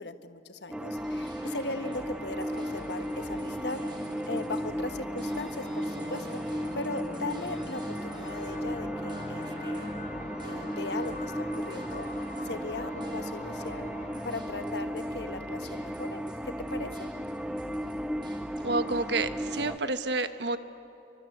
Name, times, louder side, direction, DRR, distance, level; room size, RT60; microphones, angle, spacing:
voice 1, 0.0-3.8 4.3-9.9 10.4-13.9 14.2-17.1, left 2 dB, 75° left, 9 dB, 1.4 m, -38 dB
sound 1, 0.7-19.8, equal, 5° right, 0.6 m, -35 dB
sound 2, 1.0-19.6, right 1 dB, 25° right, 4.1 m, -50 dB
sound 3, 1.8-17.1, left 1 dB, 50° left, 3.1 m, -46 dB
voice 2, 18.6-20.6, right 3 dB, 75° right, 10 dB, 1.3 m, -29 dB
29.0 x 24.0 x 8.0 m, 2.8 s
head